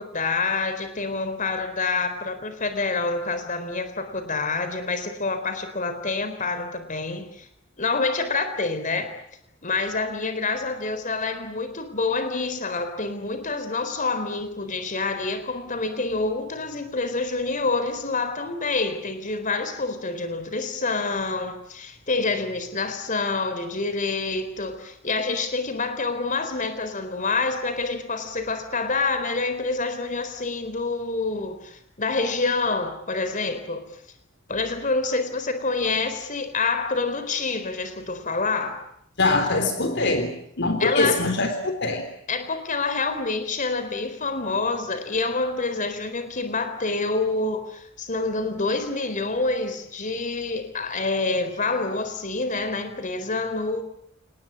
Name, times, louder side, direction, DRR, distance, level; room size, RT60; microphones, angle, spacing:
voice 1, 0.0-7.5 7.8-9.1 9.6-33.8 34.5-38.8 40.8-41.3 42.3-53.8, left 3 dB, 40° left, 9 dB, 4.2 m, -27 dB
voice 2, 39.2-40.3 40.6-42.0, left 2 dB, 60° left, 7 dB, 3.6 m, -23 dB
28.5 x 20.0 x 8.6 m, 0.70 s
head